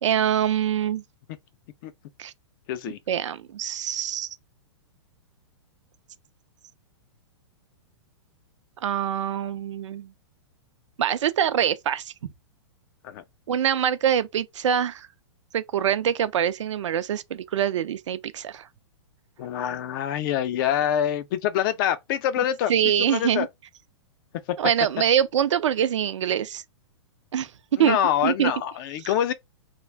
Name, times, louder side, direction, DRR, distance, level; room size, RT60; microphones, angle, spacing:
voice 1, 0.0-1.0 2.2-2.3 3.1-4.3 8.8-10.1 11.0-12.1 13.5-15.1 15.5-18.7 22.7-23.5 24.6-26.6 27.3-27.5 27.8-28.0 28.2-28.5, right 9 dB, 80° right, 0.5 m, -24 dB
voice 2, 2.7-3.0 13.0-13.2 19.4-22.7 23.1-23.5 27.8-29.3, left 10 dB, 45° left, 0.5 m, -25 dB
2.3 x 2.1 x 3.3 m
hypercardioid pair, 130°, 15 cm